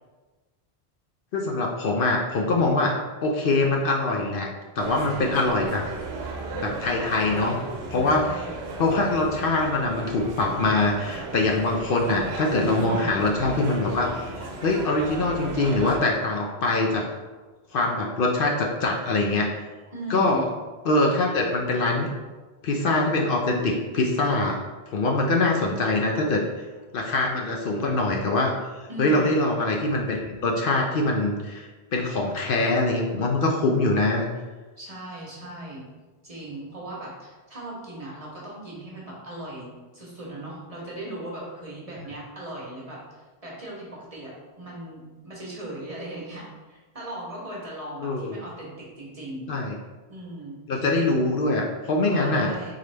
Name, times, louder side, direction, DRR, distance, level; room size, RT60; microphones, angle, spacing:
voice 1, 1.3-2.9 3.2-4.5 4.8-5.8 6.5-7.6 7.9-8.2 8.8-14.1 14.6-17.1 17.7-19.6 20.1-20.5 20.9-22.1 22.6-24.6 24.9-26.4 26.9-28.5 29.0-34.3 48.0-48.4 49.5-49.8 50.7-52.7, left 2 dB, 65° left, 0 dB, 0.7 m, -23 dB
sound 1, 4.8-16.0, right 2 dB, 80° right, 0.8 m, -35 dB
voice 2, 7.1-7.6 7.9-8.5 12.6-13.3 19.9-20.5 28.9-29.5 34.8-35.8 36.2-43.0 43.4-49.5 50.1-51.3 52.1-52.7, right 1 dB, 35° right, -4 dB, 0.9 m, -38 dB
3.9 x 3.1 x 3.3 m, 1.3 s
omnidirectional pair, 1.1 m